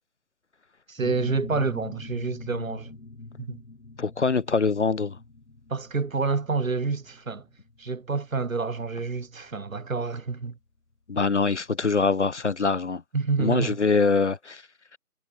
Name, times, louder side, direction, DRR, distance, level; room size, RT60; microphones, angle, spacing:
voice 1, 0.9-2.9 3.4-3.6 5.7-7.4 7.8-10.6 13.1-13.8, right 4 dB, 60° right, 2.2 m, -28 dB
sound 1, 1.0-10.4, left 3 dB, 90° left, 4.1 m, -43 dB
voice 2, 4.0-5.2 11.1-13.0 13.4-14.6, left 4 dB, 50° left, 0.9 m, -24 dB
figure-of-eight pair, 165°, 45 cm